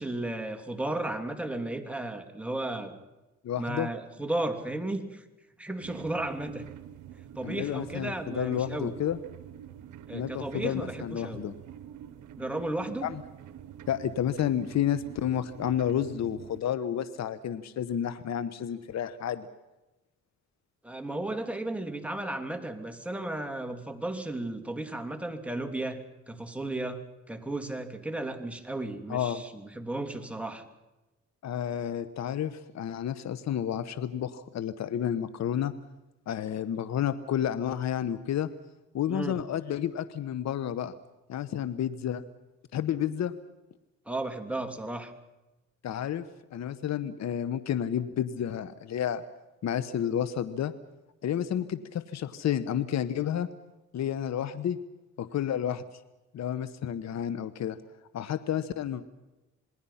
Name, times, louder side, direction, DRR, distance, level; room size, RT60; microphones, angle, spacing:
voice 1, 0.0-2.9 3.6-5.2 5.6-6.7 7.2-8.9 10.1-11.4 12.4-13.1 20.8-30.6 39.1-39.4 44.1-45.1, right 2 dB, 5° right, 5 dB, 3.0 m, -34 dB
voice 2, 3.4-3.9 7.4-9.2 10.1-11.5 13.0-13.2 13.9-19.5 29.1-29.4 31.4-35.7 36.3-38.5 38.9-40.9 41.3-42.2 42.7-43.3 45.8-49.2 49.6-50.7 51.2-53.5 53.9-54.8 55.2-55.8 56.3-57.8 58.1-59.0, left 9 dB, 65° left, 13 dB, 1.1 m, -30 dB
sound 1, 5.8-16.6, right 9 dB, 80° right, 1.1 m, -46 dB
27.5 x 20.5 x 5.8 m, 1.0 s
cardioid pair, 90°, 30 cm